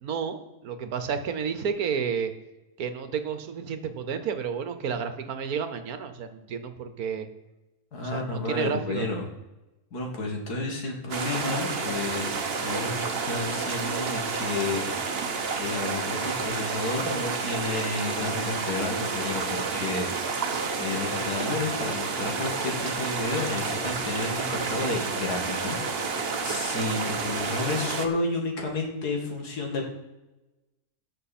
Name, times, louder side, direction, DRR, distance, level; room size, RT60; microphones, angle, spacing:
voice 1, 0.0-2.3 2.8-7.3 8.0-9.1, right 6 dB, 70° right, 9 dB, 1.5 m, -31 dB
voice 2, 7.9-9.2 9.9-14.8 15.6-20.4 20.8-25.8 26.1-26.2 26.4-29.9, left 3 dB, 85° left, 1 dB, 2.5 m, -31 dB
sound 1, 11.1-28.1, right 4 dB, 45° right, 1.2 m, -30 dB
17.0 x 6.5 x 4.3 m, 1.0 s
omnidirectional pair, 1.6 m